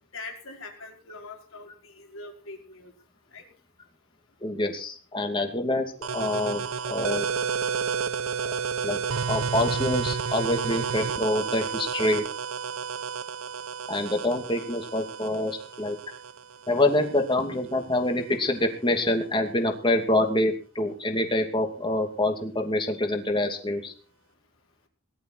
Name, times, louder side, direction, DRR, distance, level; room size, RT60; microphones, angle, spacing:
voice 1, 0.1-2.9 3.3-3.5, left 3 dB, 75° left, 2 dB, 4.9 m, -42 dB
voice 2, 4.4-7.3 8.5-9.0 9.3-12.3 13.9-16.0 16.7-23.9, left 1 dB, 25° left, 4 dB, 2.6 m, -26 dB
sound 1, 6.0-17.4, right 6 dB, 75° right, 0.7 m, -31 dB
19.5 x 12.0 x 4.7 m, 0.40 s
head